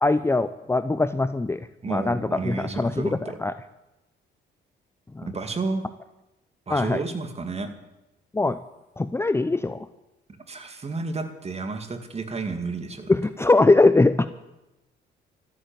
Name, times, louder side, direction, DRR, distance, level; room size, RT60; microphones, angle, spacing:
voice 1, 0.0-3.1 3.4-3.5 5.1-5.3 6.7-7.0 8.3-8.6 9.0-9.9 13.1-14.3, left 2 dB, 15° left, 12 dB, 0.6 m, -21 dB
voice 2, 1.8-3.4 5.2-5.8 6.7-7.7 10.5-13.1, right 3 dB, 30° right, 7 dB, 2.3 m, -31 dB
14.0 x 10.0 x 9.0 m, 0.96 s
cardioid pair, 90°, 20 cm